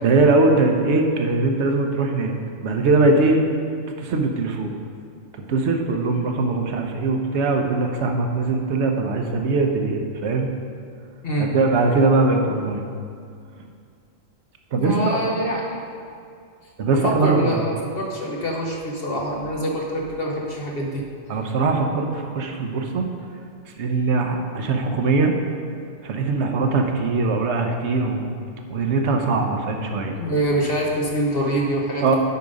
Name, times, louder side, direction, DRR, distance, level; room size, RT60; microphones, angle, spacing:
voice 1, 0.0-2.4 2.6-3.4 4.0-4.7 5.5-10.5 11.4-12.8 14.7-15.2 16.8-17.6 21.3-23.0 23.7-25.3 26.0-28.3 28.7-30.2 32.0-32.2, right 3 dB, 65° right, 3 dB, 1.1 m, -21 dB
voice 2, 11.2-11.5 14.7-15.8 17.0-21.0 30.2-32.2, right 1 dB, 50° left, -1 dB, 1.0 m, -25 dB
9.6 x 5.1 x 5.2 m, 2.3 s
omnidirectional pair, 1.3 m